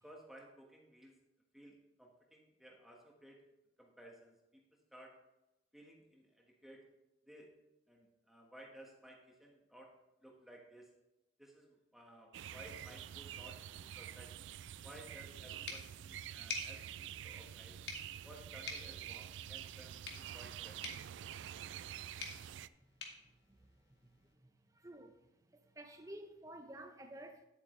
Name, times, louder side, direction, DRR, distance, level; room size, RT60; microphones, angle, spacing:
voice 1, 0.0-1.2 1.5-3.4 3.8-4.6 4.9-5.2 5.7-6.9 7.3-7.5 7.9-9.9 10.2-10.9 11.4-14.3 14.8-17.8 18.2-20.9, right 1 dB, ahead, 1.4 m, -57 dB
sound 1, 12.3-22.7, right 10 dB, 90° right, 0.3 m, -47 dB
sound 2, 15.7-24.3, left 4 dB, 70° left, 1.7 m, -50 dB
voice 2, 24.4-25.1 25.5-27.5, right 1 dB, 20° right, 0.8 m, -51 dB
10.0 x 8.2 x 3.2 m
head